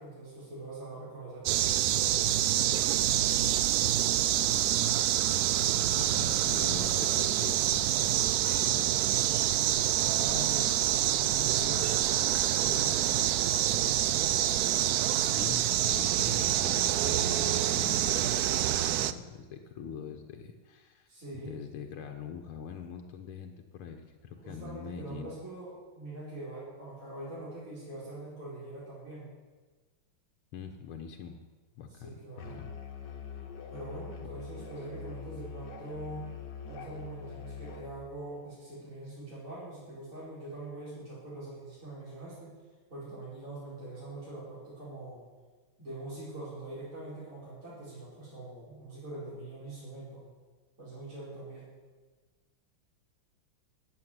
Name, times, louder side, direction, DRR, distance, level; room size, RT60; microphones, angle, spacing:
voice 1, 0.0-3.0 6.1-7.0 9.7-10.8 11.1-13.2 21.1-21.6 24.4-29.3 31.9-32.6 33.7-36.3 36.6-42.5 42.9-45.2 45.8-50.3 50.8-51.7, right 2 dB, 40° right, -9 dB, 5.1 m, -43 dB
sound 1, 1.5-19.1, right 12 dB, 90° right, 0.8 m, -27 dB
voice 2, 5.9-7.6 7.9-8.9 14.8-21.1 21.4-25.3 30.5-31.4 31.8-32.2 32.5-32.7, left 7 dB, 85° left, 4 dB, 1.9 m, -43 dB
Musical instrument, 32.4-38.0, left 5 dB, 60° left, 2.0 m, -43 dB
15.0 x 7.5 x 9.8 m, 1.4 s
omnidirectional pair, 2.3 m